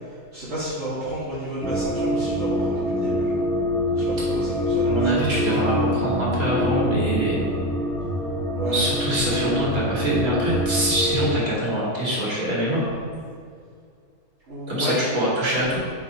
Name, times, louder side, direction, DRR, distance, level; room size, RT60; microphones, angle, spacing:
voice 1, 0.3-3.3 4.0-5.1 5.4-6.0 8.6-8.9 14.5-15.0, right 1 dB, 50° right, -11 dB, 2.0 m, -31 dB
sound 1, 1.6-11.3, left 1 dB, ahead, 0.7 m, -25 dB
voice 2, 4.8-7.4 8.6-12.8 14.7-15.8, right 1 dB, 75° right, -6 dB, 2.7 m, -24 dB
9.2 x 4.6 x 4.3 m, 2.2 s
omnidirectional pair, 1.6 m